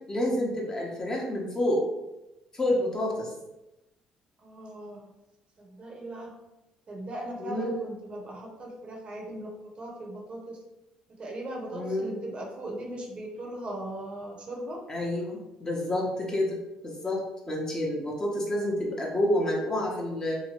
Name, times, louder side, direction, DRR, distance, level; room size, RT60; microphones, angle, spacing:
voice 1, 0.1-1.8 2.5-3.3 7.4-7.8 11.7-12.2 14.9-16.6 16.8-20.4, left 1 dB, 25° left, -2 dB, 0.8 m, -29 dB
voice 2, 4.4-5.1 5.6-6.3 6.9-10.6 11.1-14.8, right 1 dB, 45° right, 0 dB, 0.7 m, -38 dB
2.9 x 2.1 x 2.9 m, 0.96 s
supercardioid pair, 75°, 3 cm